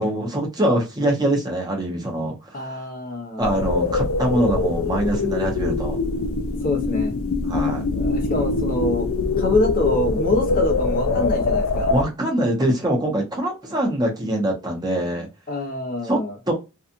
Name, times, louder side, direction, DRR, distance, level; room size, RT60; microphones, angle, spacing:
voice 1, 0.0-2.8 3.4-6.0 7.5-7.9 11.9-15.3 16.0-16.2 16.5-16.6, right 1 dB, 20° right, 0.8 m, -23 dB
voice 2, 2.5-3.5 6.6-7.1 7.9-9.1 9.4-11.9 15.5-16.4, left 2 dB, 40° left, 0.8 m, -25 dB
sound 1, 3.4-12.0, left 3 dB, 70° left, 0.4 m, -23 dB
2.7 x 2.4 x 2.5 m
head